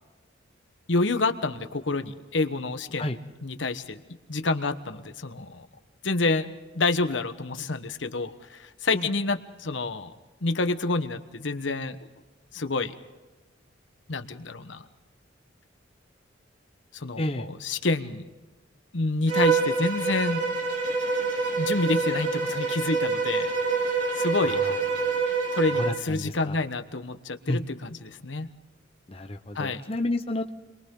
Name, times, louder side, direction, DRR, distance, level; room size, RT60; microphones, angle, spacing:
voice 1, 0.9-3.0 3.4-4.0 4.3-5.7 6.0-6.5 6.7-10.1 10.4-12.0 12.5-12.9 14.1-14.8 16.9-18.3 18.9-20.4 21.6-24.6 25.5-28.5 29.5-29.8, left 3 dB, 75° left, 9 dB, 1.2 m, -28 dB
voice 2, 17.2-17.5 24.4-24.7 25.8-26.6 27.5-27.6 29.1-30.5, left 1 dB, 30° left, 5 dB, 1.0 m, -30 dB
Bowed string instrument, 19.3-26.0, right 4 dB, 60° right, 4.8 m, -26 dB
30.0 x 23.0 x 3.8 m, 1.2 s
head